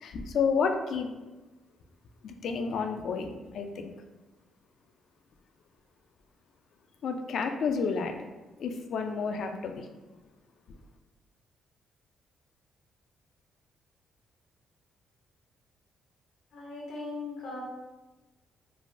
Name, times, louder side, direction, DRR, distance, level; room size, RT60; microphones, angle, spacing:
voice 1, 0.0-1.1 2.2-3.9 7.0-8.3 8.6-9.9, left 5 dB, 65° left, 5 dB, 0.3 m, -30 dB
voice 2, 16.5-17.6, left 3 dB, 85° left, -3 dB, 0.8 m, -38 dB
3.2 x 2.1 x 2.5 m, 1.2 s
cardioid pair, 90°, 0 cm